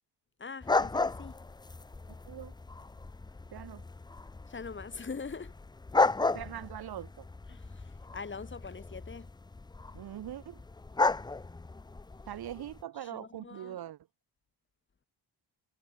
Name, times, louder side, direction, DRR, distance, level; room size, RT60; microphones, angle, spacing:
voice 1, 0.4-1.5 1.9-2.0 4.5-5.6 7.5-9.3 13.0-13.8, left 5 dB, 25° left, 2.7 m, -43 dB
sound 1, 0.6-12.8, left 3 dB, 10° left, 0.5 m, -34 dB
voice 2, 3.5-3.8 6.3-7.2 9.9-10.6 12.3-14.0, right 11 dB, 60° right, 1.1 m, -42 dB
cardioid pair, 150°, 44 cm